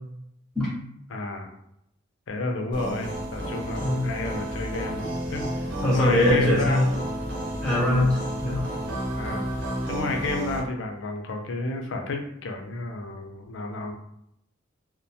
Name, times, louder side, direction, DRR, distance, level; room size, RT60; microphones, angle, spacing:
voice 1, 1.1-1.5 2.3-5.7 5.9-6.8 9.1-9.4 9.9-13.9, left 2 dB, 70° left, 3 dB, 0.5 m, -31 dB
sound 1, 2.7-10.6, right 1 dB, 65° right, 0.8 m, -31 dB
voice 2, 5.8-6.8 7.6-8.7, left 1 dB, 5° left, -6 dB, 0.5 m, -22 dB
2.4 x 2.2 x 2.7 m, 0.77 s
head